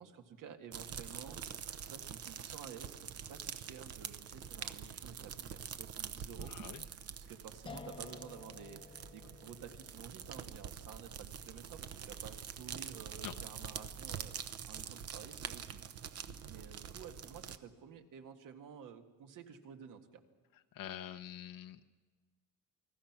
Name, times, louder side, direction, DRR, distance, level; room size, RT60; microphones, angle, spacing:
voice 1, 0.0-1.4 1.8-20.2, right 7 dB, 65° right, 5 dB, 2.0 m, -52 dB
sound 1, 0.7-17.6, right 8 dB, 45° right, 0.9 m, -45 dB
voice 2, 6.4-6.8 13.2-13.3 20.7-21.9, left 11 dB, 75° left, 6 dB, 0.9 m, -46 dB
sound 2, 7.7-14.6, left 4 dB, 15° left, 0.8 m, -55 dB
28.5 x 20.5 x 6.0 m, 1.4 s
cardioid pair, 170°, 34 cm